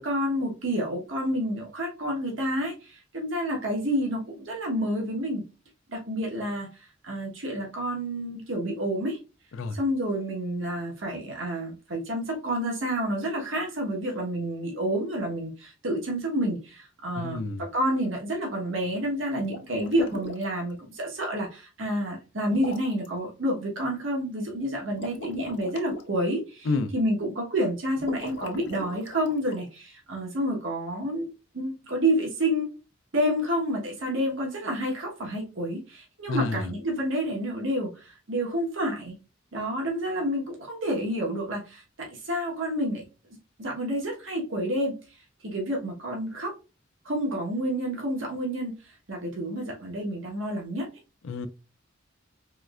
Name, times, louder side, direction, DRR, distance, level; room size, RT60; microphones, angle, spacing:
voice 1, 0.0-5.4 5.9-6.7 7.0-9.2 9.7-31.3 31.5-32.7 33.1-39.1 39.5-43.0 43.6-46.5 47.0-50.9, equal, 80° right, 1.2 m, -29 dB
voice 2, 17.1-17.6 26.7-26.9 36.3-36.7 51.2-51.5, left 3 dB, 85° left, 0.4 m, -29 dB
sound 1, 19.4-20.6 22.5-23.1 24.9-26.0 28.0-29.7, left 2 dB, 65° left, 0.9 m, -39 dB
4.5 x 3.2 x 2.4 m
head